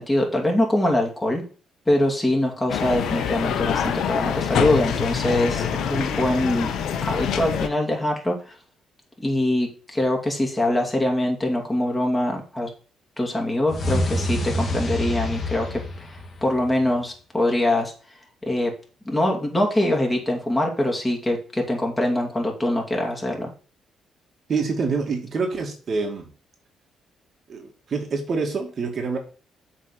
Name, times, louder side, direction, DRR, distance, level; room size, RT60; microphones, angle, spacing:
voice 1, 0.0-1.4 1.9-6.7 7.0-8.5 9.2-12.7 13.2-15.8 16.1-17.9 18.5-18.7 19.0-23.5, left 1 dB, 15° left, 0 dB, 2.7 m, -23 dB
sound 1, 2.7-7.7, left 8 dB, 75° left, 1.1 m, -25 dB
sound 2, 13.7-16.8, left 1 dB, 40° left, 1.8 m, -27 dB
voice 2, 24.5-26.3 27.5-29.2, right 4 dB, 50° right, 2 dB, 2.1 m, -26 dB
7.4 x 4.1 x 6.8 m, 0.38 s
cardioid pair, 90°, 0 cm